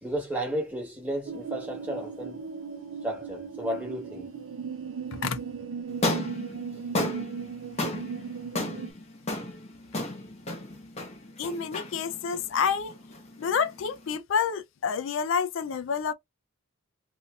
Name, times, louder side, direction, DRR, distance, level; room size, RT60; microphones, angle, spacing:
voice 1, 0.0-2.4 3.0-4.3, right 1 dB, 10° right, 1.2 m, -33 dB
sound 1, 1.3-8.9, right 5 dB, 75° right, 0.4 m, -37 dB
sound 2, 5.9-14.2, left 1 dB, 30° left, 0.7 m, -34 dB
voice 2, 11.4-13.0 13.4-16.1, left 6 dB, 65° left, 0.4 m, -28 dB
2.7 x 2.6 x 2.3 m
head